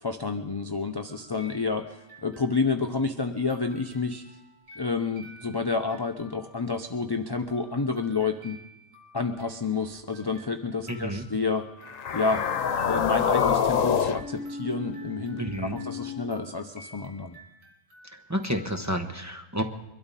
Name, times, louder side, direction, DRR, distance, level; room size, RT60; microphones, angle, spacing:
voice 1, 0.0-1.9 2.2-4.2 4.8-8.6 9.1-11.6 12.1-12.4 12.8-17.4, left 4 dB, 25° left, 5 dB, 0.5 m, -29 dB
sound 1, 1.1-3.0 3.5-19.1, equal, 85° right, 2.7 m, -53 dB
voice 2, 10.9-11.2 15.4-15.8 18.1-19.6, equal, 15° right, 4 dB, 1.0 m, -30 dB
sound 2, 11.9-16.2, left 7 dB, 80° left, 1.3 m, -27 dB
23.5 x 12.5 x 4.2 m, 0.99 s
omnidirectional pair, 1.4 m